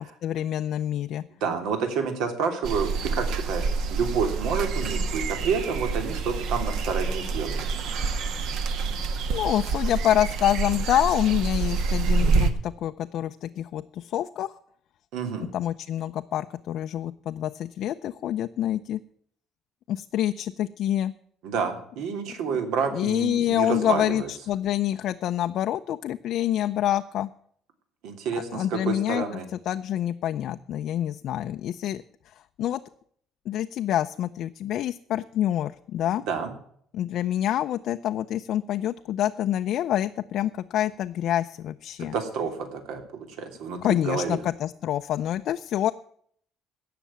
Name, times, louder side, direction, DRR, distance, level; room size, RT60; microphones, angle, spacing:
voice 1, 0.2-1.2 9.3-14.5 15.5-19.0 19.9-21.1 22.9-27.3 28.5-29.2 29.7-32.8 33.5-36.2 36.9-42.1 43.8-45.9, left 11 dB, 50° left, 8 dB, 0.4 m, -27 dB
voice 2, 1.4-7.7 15.1-15.5 21.4-24.3 28.0-29.5 36.3-36.5 42.1-44.4, right 6 dB, 80° right, 6 dB, 3.1 m, -29 dB
sound 1, 2.6-12.5, right 4 dB, 60° right, 1.4 m, -27 dB
17.5 x 6.7 x 7.2 m, 0.63 s
cardioid pair, 175°, 0 cm